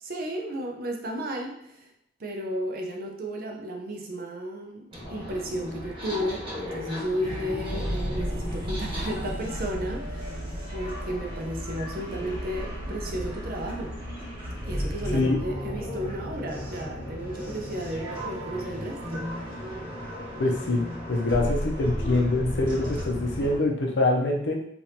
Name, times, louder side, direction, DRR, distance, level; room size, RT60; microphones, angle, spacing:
voice 1, 0.0-1.9 2.2-10.5 10.7-14.0 14.6-19.3, equal, 50° right, 1 dB, 0.6 m, -33 dB
sound 1, 4.9-23.6, equal, 25° right, 1.2 m, -34 dB
voice 2, 20.4-20.8 21.1-24.5, left 2 dB, 70° left, 0 dB, 0.6 m, -24 dB
3.4 x 2.5 x 2.8 m, 0.72 s
head